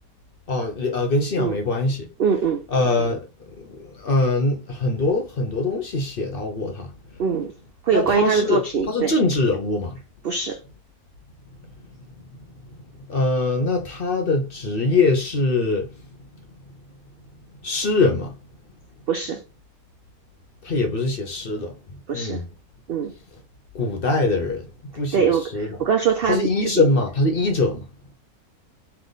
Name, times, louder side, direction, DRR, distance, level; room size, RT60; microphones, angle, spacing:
voice 1, 0.5-2.1 2.7-3.2 3.7-6.9 7.9-8.6 8.9-10.0 13.1-15.9 17.6-18.3 20.6-21.7 22.1-22.4 23.7-24.6 24.9-25.7 26.3-27.8, left 3 dB, 45° left, 0.8 m, -22 dB
voice 2, 2.2-2.6 7.2-7.5 7.8-9.1 10.2-10.6 19.1-19.4 22.1-22.4 22.9-23.1 25.1-26.8, right 6 dB, 70° right, 0.5 m, -22 dB
3.4 x 3.0 x 3.9 m
omnidirectional pair, 1.6 m